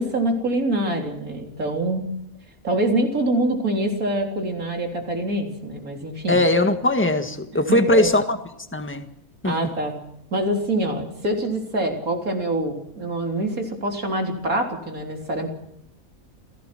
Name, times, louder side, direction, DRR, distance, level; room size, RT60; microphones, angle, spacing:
voice 1, 0.0-2.0 2.6-6.4 7.7-8.1 9.4-9.9 10.3-15.5, right 1 dB, 75° right, 2 dB, 4.1 m, -25 dB
voice 2, 6.3-8.4 8.7-9.1 9.4-9.5, left 1 dB, 10° left, 7 dB, 1.7 m, -20 dB
28.5 x 17.0 x 6.1 m, 0.78 s
omnidirectional pair, 1.5 m